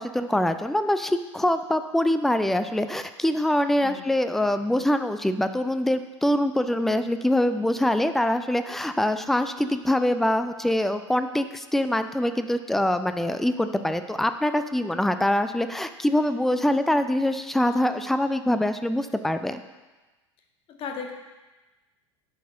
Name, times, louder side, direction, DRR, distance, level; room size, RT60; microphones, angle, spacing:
voice 1, 0.0-19.6, left 1 dB, ahead, 10 dB, 0.4 m, -24 dB
voice 2, 3.8-4.1 20.7-21.1, left 5 dB, 35° left, 3 dB, 1.3 m, -36 dB
10.0 x 4.7 x 5.2 m, 1.2 s
figure-of-eight pair, 80°, 16 cm